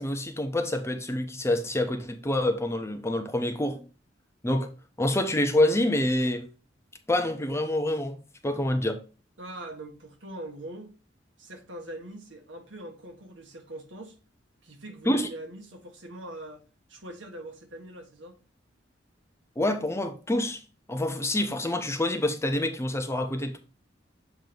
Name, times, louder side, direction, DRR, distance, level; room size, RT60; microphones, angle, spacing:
voice 1, 0.0-3.8 4.4-4.7 5.0-6.5 7.1-8.2 8.4-9.0 15.1-15.3 19.6-20.6 20.9-23.6, left 1 dB, 15° left, 0.8 m, -27 dB
voice 2, 9.4-11.0 11.4-14.2 14.6-16.6 16.9-18.4, right 1 dB, 80° right, 1.6 m, -42 dB
7.7 x 3.0 x 5.2 m
head